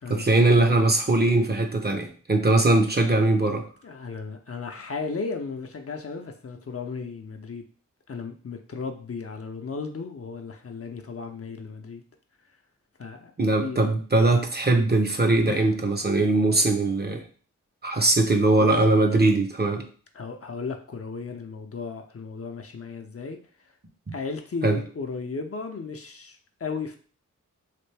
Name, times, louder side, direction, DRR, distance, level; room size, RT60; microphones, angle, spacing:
voice 1, 0.1-3.7 13.4-17.2 17.8-19.8 24.6-24.8, right 2 dB, 30° right, 4 dB, 0.7 m, -21 dB
voice 2, 3.8-7.6 8.1-12.0 13.0-13.3 13.6-14.0 15.5-15.7 18.6-18.7 20.1-23.7 24.1-27.0, left 4 dB, 45° left, 4 dB, 0.6 m, -35 dB
3.3 x 2.5 x 3.3 m, 0.41 s
cardioid pair, 45°, 32 cm